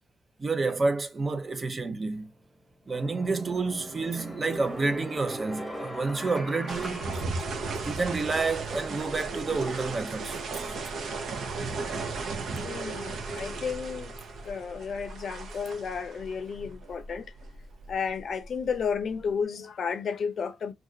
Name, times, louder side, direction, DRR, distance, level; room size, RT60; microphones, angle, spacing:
voice 1, 0.4-2.3 2.9-7.1 7.8-10.4, right 3 dB, 30° right, 0.5 m, -29 dB
sound 1, 2.1-2.2 2.9-8.1, equal, ahead, 1.0 m, -40 dB
sound 2, 4.1-4.7 7.1-8.4 8.7-8.8 10.5-11.5, right 3 dB, 50° right, 1.2 m, -48 dB
sound 3, 6.7-19.2, right 3 dB, 70° right, 0.7 m, -36 dB
voice 2, 12.6-14.1 14.4-17.2 17.9-20.7, left 6 dB, 55° left, 0.6 m, -32 dB
2.4 x 2.4 x 3.8 m
cardioid pair, 120°, 0 cm